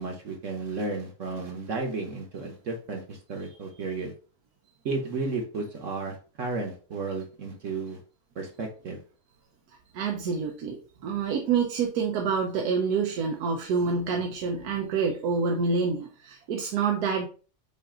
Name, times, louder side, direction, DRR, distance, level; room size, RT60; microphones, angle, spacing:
voice 1, 0.0-4.1 4.8-8.0 8.4-9.0, right 3 dB, 55° right, 2 dB, 1.2 m, -33 dB
voice 2, 9.9-17.3, right 5 dB, 80° right, 2 dB, 1.2 m, -27 dB
5.6 x 2.5 x 3.7 m, 0.38 s
omnidirectional pair, 1.6 m